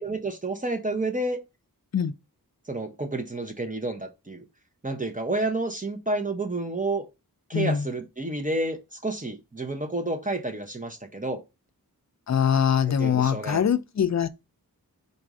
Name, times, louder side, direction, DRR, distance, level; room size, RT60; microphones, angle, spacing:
voice 1, 0.0-1.4 2.7-4.4 4.8-7.1 7.5-11.4 12.9-13.6, right 2 dB, 20° right, 0.7 m, -30 dB
voice 2, 7.5-7.9 12.3-14.3, left 8 dB, 50° left, 0.5 m, -23 dB
4.0 x 2.5 x 4.7 m
wide cardioid pair, 65°, 37 cm